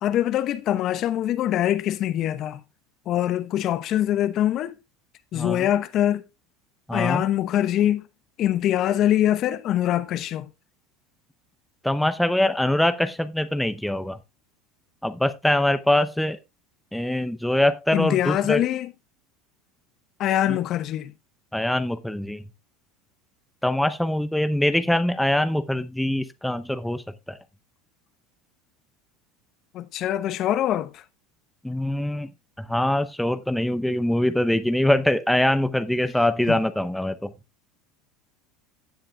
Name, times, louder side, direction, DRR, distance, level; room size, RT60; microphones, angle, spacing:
voice 1, 0.0-2.6 3.1-4.8 5.3-6.2 6.9-8.1 8.4-10.5 17.9-18.9 20.2-21.1 29.7-31.0 36.5-36.6, left 12 dB, 50° left, 0.9 m, -23 dB
voice 2, 5.3-5.7 6.9-7.2 11.8-14.2 15.0-16.4 16.9-18.6 20.5-20.6 21.5-22.4 23.6-27.0 27.3-27.4 31.6-32.3 32.6-37.3, left 1 dB, 5° left, 0.7 m, -23 dB
16.0 x 7.6 x 2.3 m
hypercardioid pair, 80°, 0 cm